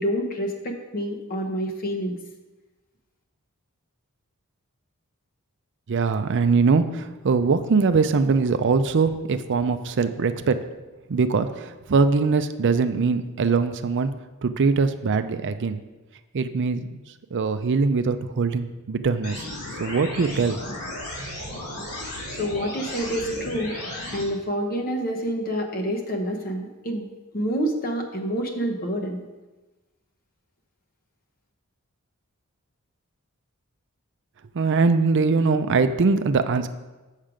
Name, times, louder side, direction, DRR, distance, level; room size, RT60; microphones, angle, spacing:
voice 1, 0.0-2.2 22.4-23.8 24.1-27.1 27.3-29.2, equal, 40° left, 2 dB, 1.1 m, -27 dB
voice 2, 5.9-10.6 11.1-14.1 14.4-15.8 16.3-16.8 17.3-19.5 19.8-20.6 34.5-36.7, right 4 dB, 55° right, 10 dB, 0.5 m, -22 dB
sound 1, 19.2-24.2, left 1 dB, 70° left, 3.2 m, -34 dB
7.4 x 6.5 x 5.0 m, 1.1 s
head